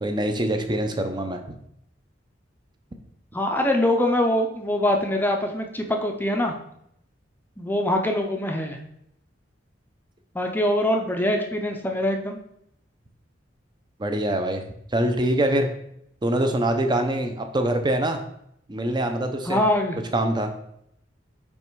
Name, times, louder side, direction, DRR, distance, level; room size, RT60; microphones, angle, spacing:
voice 1, 0.0-1.4 14.0-14.6 14.9-15.7 16.2-18.2 18.7-19.6 20.1-20.5, right 1 dB, 25° right, 5 dB, 0.7 m, -24 dB
voice 2, 3.3-6.6 7.6-8.8 10.3-12.4 19.5-20.0, left 1 dB, 10° left, 3 dB, 0.6 m, -23 dB
5.5 x 4.2 x 4.6 m, 0.75 s
head